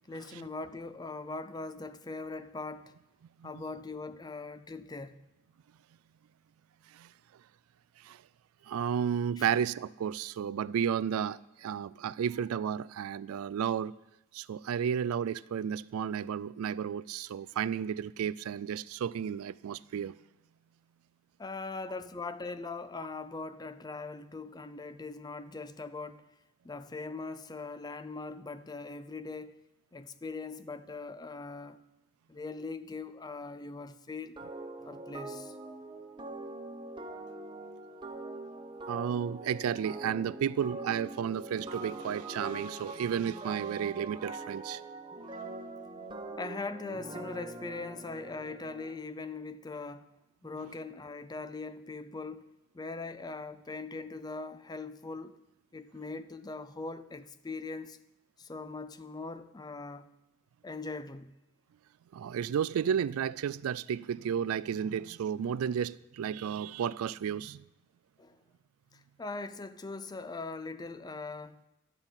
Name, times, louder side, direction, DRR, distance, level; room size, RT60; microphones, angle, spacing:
voice 1, 0.1-2.9 3.4-5.2 9.4-9.5 21.4-26.2 26.6-29.6 29.9-31.8 32.3-34.4 34.9-35.6 46.4-50.1 50.4-52.5 52.7-55.4 55.7-58.0 58.4-60.1 60.6-61.3 68.2-68.4 68.9-71.6, left 3 dB, 20° left, 0.4 m, -41 dB
voice 2, 8.7-13.9 14.3-20.2 38.9-44.8 62.1-67.6, right 8 dB, 85° right, 0.3 m, -32 dB
sound 1, 34.4-49.0, right 2 dB, 20° right, 1.0 m, -43 dB
11.5 x 5.6 x 8.9 m
head